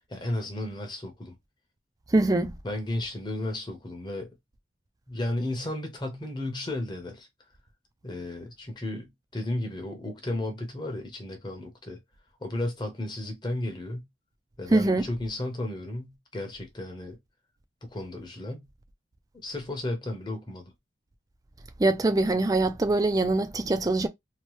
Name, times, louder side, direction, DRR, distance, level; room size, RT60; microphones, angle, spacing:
voice 1, 0.1-1.3 2.6-4.3 5.1-7.3 8.0-12.0 12.4-14.1 14.6-17.2 17.8-18.7 19.3-20.6, left 1 dB, 25° left, 0.8 m, -34 dB
voice 2, 2.1-2.5 14.7-15.1 21.8-24.1, right 2 dB, 20° right, 0.3 m, -23 dB
2.9 x 2.1 x 3.0 m
head